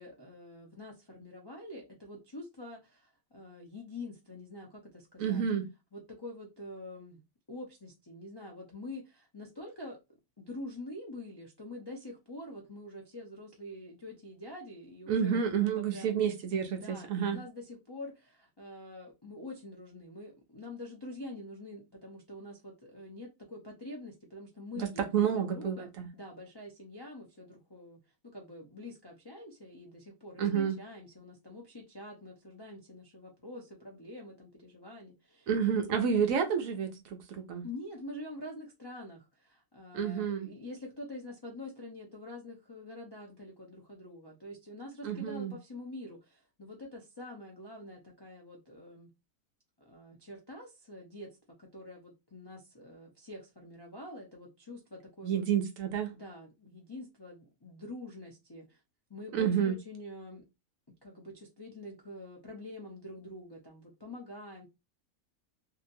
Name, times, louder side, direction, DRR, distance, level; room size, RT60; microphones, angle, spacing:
voice 1, 0.0-5.4 5.9-7.2 7.5-10.0 10.4-16.3 16.7-28.0 28.3-35.5 37.6-49.1 49.9-55.4 56.1-58.8 59.1-60.4 61.0-64.7, left 1 dB, 40° left, 0.3 m, -46 dB
voice 2, 5.2-5.6 15.1-17.4 24.8-26.1 30.4-30.8 35.5-37.6 39.9-40.5 45.0-45.5 55.2-56.1 59.3-59.8, right 7 dB, 70° right, 1.0 m, -30 dB
2.8 x 2.7 x 2.6 m
omnidirectional pair, 1.6 m